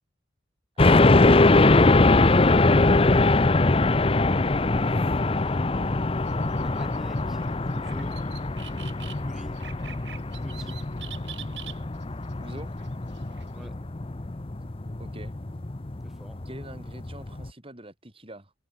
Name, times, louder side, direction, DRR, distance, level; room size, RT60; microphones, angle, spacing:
sound 1, 0.8-17.5, left 2 dB, 30° left, 0.7 m, -22 dB
voice 1, 0.8-2.6 12.4-12.7 15.0-15.4 16.4-18.5, right 1 dB, 30° right, 4.9 m, -44 dB
voice 2, 4.7-5.8 6.6-7.4 7.7-8.3 9.2-9.6 10.4-10.8 13.5-13.8 16.0-16.5, equal, ahead, 5.7 m, -46 dB
sound 2, 6.2-13.7, right 11 dB, 70° right, 4.2 m, -46 dB
head